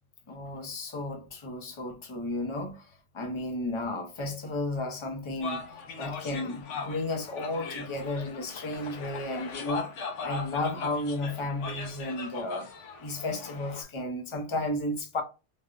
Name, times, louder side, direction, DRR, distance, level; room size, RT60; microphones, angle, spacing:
voice 1, 0.3-12.7 13.0-15.2, left 2 dB, 35° left, 0.6 m, -33 dB
sound 1, 5.4-13.8, left 4 dB, 80° left, 1.1 m, -39 dB
4.2 x 2.0 x 2.4 m
omnidirectional pair, 1.2 m